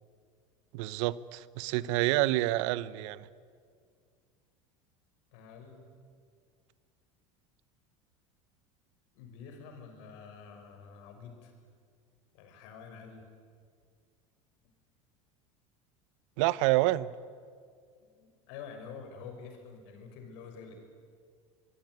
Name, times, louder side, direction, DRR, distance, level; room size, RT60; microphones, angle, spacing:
voice 1, 0.7-3.3 16.4-17.1, right 17 dB, 65° right, 19 dB, 0.9 m, -28 dB
voice 2, 5.3-5.8 9.1-11.5 12.3-13.2 18.2-20.7, left 6 dB, 65° left, 5 dB, 6.4 m, -48 dB
25.0 x 22.5 x 9.5 m, 2.1 s
hypercardioid pair, 85°, 17 cm